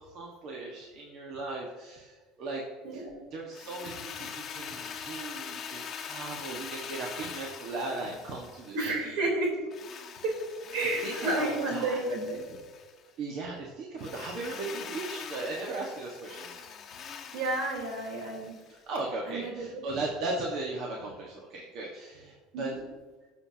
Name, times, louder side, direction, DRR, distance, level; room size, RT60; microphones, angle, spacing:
voice 1, 0.0-2.6 2.9-3.0 3.3-8.7 9.0-9.2 10.8-12.0 13.2-16.5 18.7-22.7, right 3 dB, 55° right, -1 dB, 1.5 m, -37 dB
voice 2, 2.8-3.2 8.7-9.6 10.2-10.4 10.7-12.4 17.3-18.6 19.3-19.8 22.5-22.8, right 2 dB, 75° right, -1 dB, 3.8 m, -31 dB
Drill, 3.5-9.1 9.7-13.0 14.0-18.8, left 7 dB, 30° left, 1.3 m, -43 dB
18.5 x 6.9 x 2.9 m, 1.3 s
cardioid pair, 135°, 0 cm